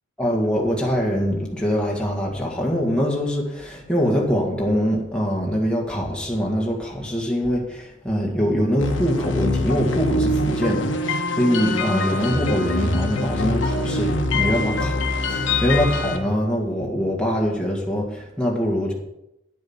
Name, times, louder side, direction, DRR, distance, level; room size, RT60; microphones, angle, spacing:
voice 1, 0.2-18.9, equal, 5° left, 1.8 m, -23 dB
sound 1, 8.8-16.2, left 2 dB, 65° left, 1.4 m, -24 dB
10.5 x 7.9 x 5.7 m
head